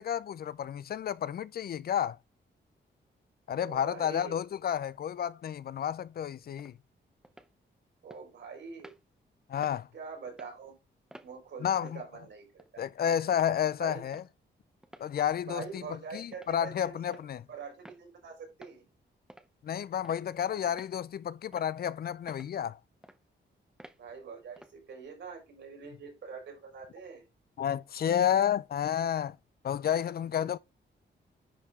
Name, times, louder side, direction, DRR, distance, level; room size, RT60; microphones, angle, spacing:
voice 1, 0.0-2.2 3.5-6.7 9.5-9.9 11.6-12.0 12.8-14.2 15.0-17.4 19.6-22.8 27.6-29.4 29.6-30.6, left 9 dB, 55° left, 0.4 m, -31 dB
voice 2, 3.6-4.4 8.0-8.9 9.9-10.7 11.2-12.8 13.8-14.0 15.4-17.2 17.5-18.9 24.0-27.2, right 5 dB, 75° right, 4.5 m, -44 dB
sound 1, 6.6-6.7 7.2-7.5 8.1-8.2 8.8-9.0 9.6-9.8 10.3-10.5 11.1-11.3 11.9-12.0 12.6-12.7 13.3-13.5 14.1-14.3 14.8-15.1 15.6-15.8 16.3-16.6 17.1-17.3 17.9-18.0 18.6-18.8 19.3-19.5 20.0-20.3 20.8-21.0 21.5-21.7 22.3-22.5 23.0-23.2 23.8-24.0 24.6-24.8, right 1 dB, 5° right, 0.7 m, -52 dB
10.0 x 4.8 x 3.6 m
wide cardioid pair, 135°, 19 cm